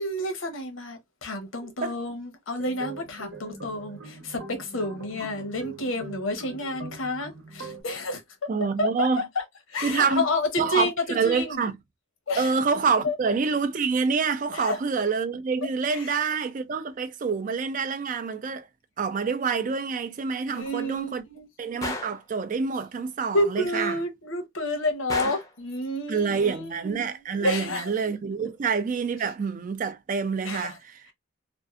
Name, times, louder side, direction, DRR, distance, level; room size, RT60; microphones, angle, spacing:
voice 1, 0.0-8.2 8.8-9.4 9.7-11.6 12.3-12.6 13.0-13.1 14.5-14.8 15.9-16.2 20.5-21.5 23.3-27.9 30.4-30.8, left 1 dB, 85° left, 0.8 m, -30 dB
sound 1, 2.6-7.8, right 3 dB, 65° right, 0.8 m, -42 dB
voice 2, 8.5-9.3 9.8-10.3 10.6-11.8 12.4-18.7 19.0-21.2 21.6-24.0 26.1-31.1, right 5 dB, 40° right, 0.3 m, -27 dB
Gunshot gunfire, 21.8-22.2 25.1-25.6, left 2 dB, 15° left, 0.5 m, -32 dB
2.6 x 2.4 x 2.3 m
head